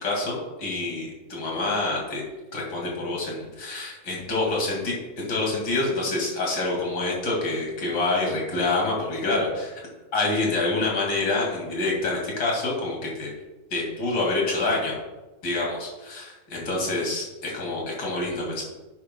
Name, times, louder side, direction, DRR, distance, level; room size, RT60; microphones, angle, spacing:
voice 1, 0.0-2.2 2.5-9.8 10.1-13.3 13.7-15.0 15.4-18.6, left 2 dB, 35° left, -2 dB, 2.0 m, -27 dB
11.5 x 10.5 x 2.2 m, 1.2 s
omnidirectional pair, 4.5 m